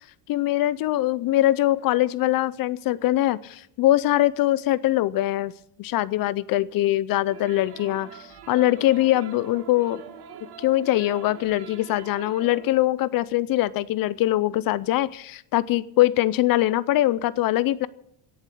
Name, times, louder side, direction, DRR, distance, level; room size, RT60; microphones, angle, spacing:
voice 1, 0.3-5.5 5.8-10.0 10.6-17.9, left 15 dB, 45° left, 19 dB, 0.5 m, -22 dB
sound 1, 7.3-12.8, right 6 dB, 50° right, 1.9 m, -44 dB
17.5 x 7.4 x 8.2 m, 0.71 s
cardioid pair, 140°, 49 cm